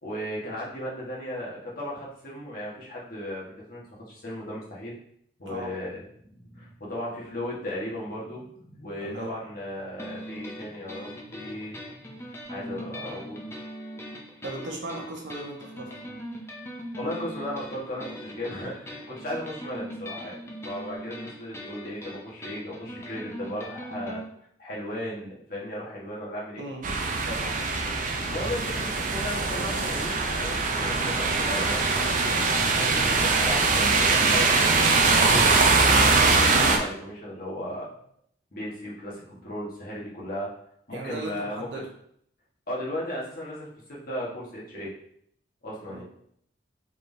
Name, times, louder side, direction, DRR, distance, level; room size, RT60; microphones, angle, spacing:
voice 1, 0.0-4.9 5.4-13.5 16.9-20.4 20.6-24.2 24.6-26.7 28.2-35.6 36.1-37.9 38.5-40.5 40.9-41.8 42.7-44.9 45.6-46.0, left 1 dB, 50° left, -5 dB, 1.3 m, -36 dB
voice 2, 9.0-9.3 14.4-15.9 26.6-26.9 27.2-27.6 40.9-41.9 45.9-46.0, right 2 dB, 70° right, 0 dB, 0.9 m, -37 dB
sound 1, 10.0-24.2, equal, 15° left, 0.5 m, -40 dB
sound 2, 26.8-36.8, right 3 dB, 40° right, 0.4 m, -22 dB
4.3 x 3.5 x 2.6 m, 0.67 s
head